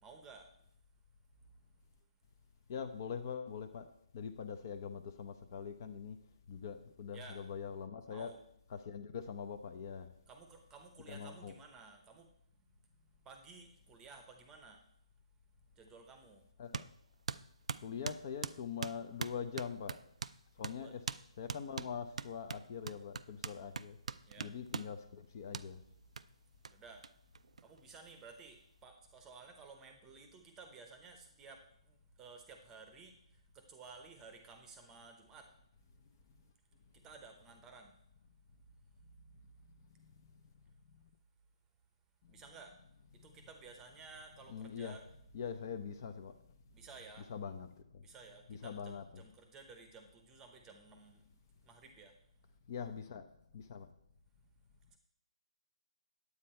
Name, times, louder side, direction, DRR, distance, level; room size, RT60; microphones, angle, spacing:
voice 1, 0.0-0.5 7.1-7.5 8.1-8.4 10.3-12.3 13.2-14.8 15.8-16.4 20.8-21.0 24.2-24.6 26.7-27.1 27.6-33.2 33.5-35.5 37.0-37.9 42.3-42.8 43.2-45.0 46.7-47.3 48.0-51.2 51.6-52.1 54.9-55.0, right 4 dB, 10° right, 5 dB, 0.9 m, -55 dB
voice 2, 2.7-3.9 4.1-6.2 6.5-8.3 8.7-10.1 11.1-11.5 16.6-16.9 17.8-20.0 20.6-21.0 21.4-24.0 24.4-25.8 40.0-40.5 44.5-44.9 45.3-46.3 47.3-48.0 48.5-49.2 52.7-53.2 53.5-53.9, left 7 dB, 35° left, 9 dB, 0.7 m, -43 dB
sound 1, 16.7-16.9 17.3-20.4 20.6-20.8 21.1-21.2 21.5-24.9 25.5-25.7 26.2-26.3 26.6-26.7 27.0-27.1 27.3-28.1, right 5 dB, 75° right, 0.4 m, -41 dB
9.7 x 8.5 x 4.3 m, 0.71 s
hypercardioid pair, 165°, 4 cm